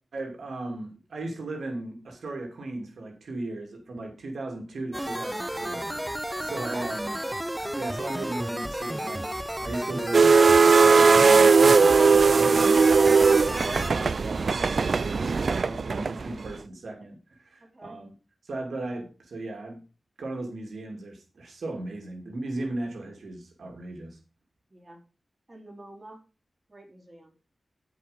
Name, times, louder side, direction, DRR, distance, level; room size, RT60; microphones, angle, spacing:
voice 1, 0.1-7.2 7.7-18.1 18.4-19.8 20.2-24.2, right 2 dB, 90° right, 2 dB, 2.7 m, -37 dB
sound 1, 4.9-13.9, equal, 10° right, 0.7 m, -32 dB
voice 2, 6.5-6.9 17.6-18.0 24.7-25.0 25.5-26.2 26.7-27.3, right 1 dB, 30° right, 0 dB, 4.5 m, -45 dB
sound 2, 10.1-16.5, right 4 dB, 65° right, 0.5 m, -19 dB
15.0 x 5.1 x 5.1 m, 0.33 s
wide cardioid pair, 70°, 0 cm